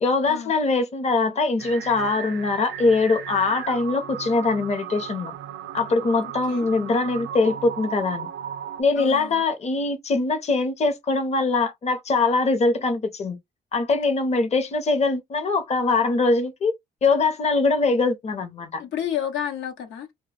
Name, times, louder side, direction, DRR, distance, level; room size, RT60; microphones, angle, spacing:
voice 1, 0.0-5.3 5.7-8.3 8.8-13.4 13.7-16.7 17.0-18.8, left 3 dB, 35° left, 0.7 m, -22 dB
sound 1, 1.6-8.8, right 9 dB, 65° right, 0.4 m, -36 dB
voice 2, 9.0-9.4 18.8-20.1, left 9 dB, 80° left, 0.9 m, -30 dB
2.2 x 2.1 x 3.2 m
cardioid pair, 90°, 20 cm